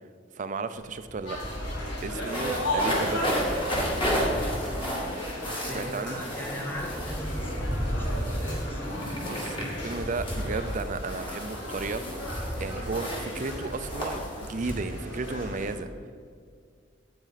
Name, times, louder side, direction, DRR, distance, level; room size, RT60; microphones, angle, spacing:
voice 1, 0.4-1.4 2.0-3.6 5.7-6.2 9.2-9.6 9.8-12.3 12.6-15.9, right 3 dB, 45° right, 11 dB, 0.4 m, -34 dB
sound 1, 0.8-0.9 1.1-15.5, equal, 25° left, 2.0 m, -32 dB
sound 2, 1.2-15.7, equal, 75° left, 2.2 m, -36 dB
voice 2, 5.4-9.1, equal, 10° left, 0 dB, 1.3 m, -39 dB
9.1 x 8.6 x 4.1 m, 2.2 s
head